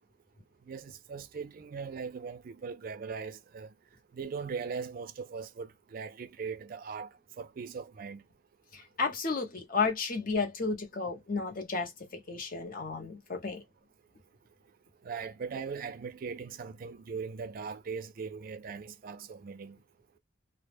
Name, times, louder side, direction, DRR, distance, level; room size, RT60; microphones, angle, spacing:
voice 1, 0.7-3.7 4.1-7.1 7.4-8.2 15.0-19.8, right 5 dB, 45° right, 0.3 m, -40 dB
voice 2, 8.7-13.6, left 4 dB, 45° left, 0.7 m, -33 dB
2.1 x 2.0 x 3.1 m
head